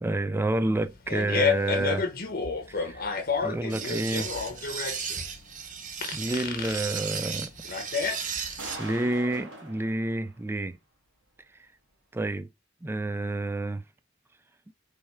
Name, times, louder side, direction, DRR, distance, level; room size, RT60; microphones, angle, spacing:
voice 1, 0.0-2.0 2.7-3.1 3.4-4.3 6.1-7.5 8.2-8.4 8.8-10.8 12.1-12.5 12.8-13.8, right 2 dB, 10° right, 0.3 m, -29 dB
Fart, 0.8-8.7, left 5 dB, 50° left, 0.8 m, -30 dB
sound 1, 3.7-8.8, right 7 dB, 40° right, 0.6 m, -35 dB
sound 2, 5.0-5.1 7.9-8.0 8.6-10.3, right 1 dB, 75° right, 1.6 m, -41 dB
3.3 x 3.3 x 4.4 m
head